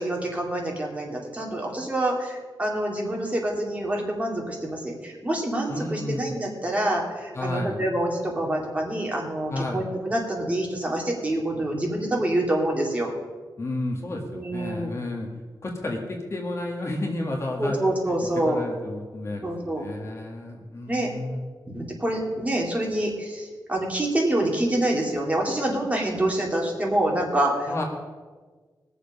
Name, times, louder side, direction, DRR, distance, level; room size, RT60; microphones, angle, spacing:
voice 1, 0.0-13.1 14.2-14.9 17.6-18.6 19.4-19.8 20.9-21.1 21.7-27.7, right 1 dB, 20° right, -1 dB, 2.6 m, -26 dB
voice 2, 5.7-6.3 7.3-7.8 9.5-9.8 13.6-15.3 15.6-17.8 18.1-21.4 27.7-27.8, left 2 dB, 35° left, 0 dB, 1.8 m, -31 dB
20.5 x 7.1 x 5.5 m, 1.4 s
wide cardioid pair, 130°, 8 cm